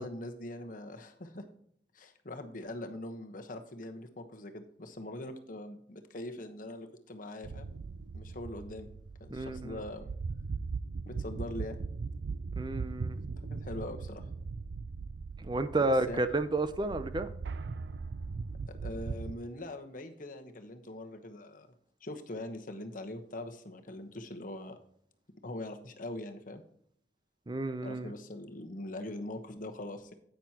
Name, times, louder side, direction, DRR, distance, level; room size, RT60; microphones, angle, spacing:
voice 1, 0.0-1.4 1.9-7.7 8.1-8.9 9.2-10.1 11.1-11.7 13.5-14.2 15.8-16.3 18.7-21.7 22.0-24.8 25.4-26.6 27.8-30.1, left 1 dB, 50° left, 6 dB, 1.1 m, -42 dB
sound 1, 7.4-19.3, right 4 dB, 75° right, 0.5 m, -39 dB
voice 2, 9.3-9.8 12.6-13.2 15.4-17.3 27.5-28.1, right 2 dB, 25° right, 11 dB, 0.5 m, -31 dB
10.5 x 9.1 x 2.9 m, 0.68 s
head